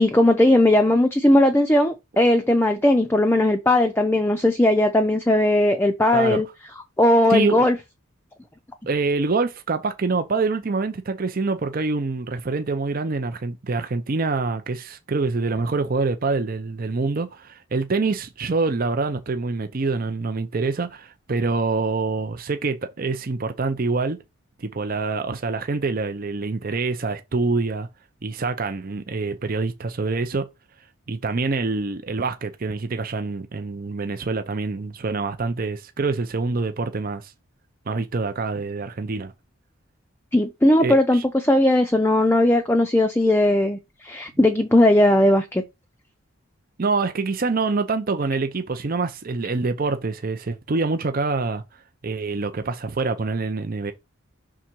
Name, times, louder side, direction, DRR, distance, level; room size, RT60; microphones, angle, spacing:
voice 1, 0.0-6.5 7.0-7.8 40.3-45.6, left 1 dB, 10° left, 0.5 m, -18 dB
voice 2, 7.3-7.7 8.9-24.2 24.6-27.9 28.2-30.5 31.1-37.3 37.9-39.3 40.8-41.2 46.8-51.6 52.0-53.9, right 3 dB, 40° right, 0.5 m, -25 dB
5.8 x 3.7 x 4.4 m
head